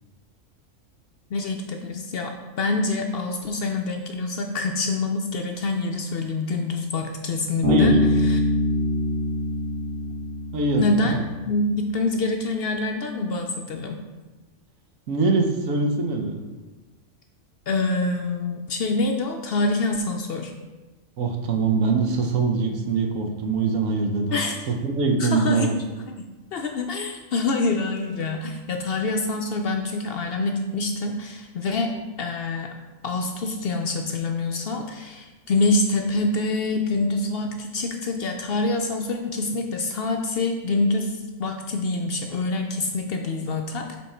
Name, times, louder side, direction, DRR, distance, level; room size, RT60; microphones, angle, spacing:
voice 1, 1.3-8.4 10.8-11.2 11.5-14.0 17.7-20.5 24.3-24.6 25.2-26.2 26.5-31.9 32.2-32.7 33.0-43.9, left 2 dB, 60° left, 3 dB, 0.6 m, -26 dB
Bass guitar, 7.6-11.2, left 2 dB, 55° right, 2.2 m, -23 dB
voice 2, 15.1-16.4 21.2-24.4 24.8-25.8, right 4 dB, 85° right, 3 dB, 1.3 m, -23 dB
7.2 x 3.7 x 4.2 m, 1.2 s
omnidirectional pair, 1.4 m